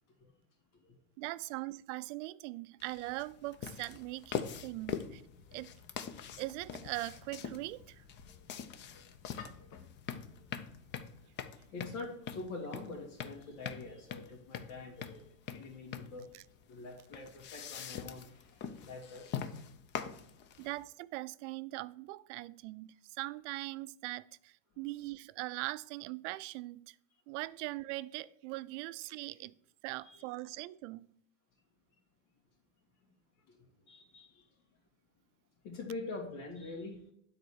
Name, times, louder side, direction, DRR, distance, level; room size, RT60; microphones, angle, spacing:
voice 1, 1.2-5.2 5.5-5.7 6.4-8.0 16.3-16.4 20.6-26.9 27.3-29.5 29.8-31.1, right 19 dB, 60° right, 0.5 m, -41 dB
sound 1, 2.8-20.8, left 8 dB, 30° left, 0.5 m, -43 dB
sound 2, 4.3-11.1, left 6 dB, 45° left, 1.2 m, -56 dB
voice 2, 8.8-9.1 9.6-9.8 10.1-10.4 11.7-16.3 16.7-19.5 30.0-30.2 33.5-33.6 33.9-34.5 35.6-37.1, left 3 dB, 80° left, 2.7 m, -45 dB
9.8 x 4.1 x 6.4 m
supercardioid pair, 150°, 40 cm